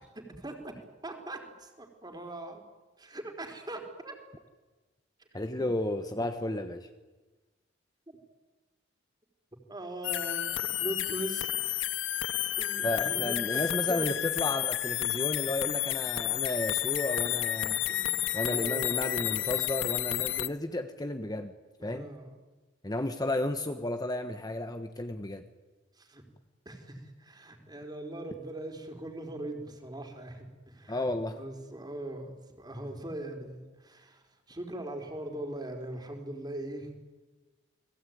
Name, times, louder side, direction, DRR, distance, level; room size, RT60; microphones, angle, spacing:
voice 1, 0.1-0.7 1.0-2.6 3.0-4.2 5.5-5.7 8.1-8.2 9.7-11.5 12.6-13.6 13.9-14.1 17.9-19.4 21.8-22.3 26.0-26.2 26.7-31.0 31.4-37.0, right 1 dB, 20° right, 4 dB, 4.2 m, -41 dB
voice 2, 5.3-6.9 12.8-17.8 18.3-21.5 21.8-22.1 22.8-25.4 30.9-31.4, left 1 dB, 20° left, 7 dB, 1.3 m, -33 dB
sound 1, 10.0-20.5, left 13 dB, 80° left, 0.8 m, -31 dB
29.5 x 21.0 x 9.4 m, 1.2 s
head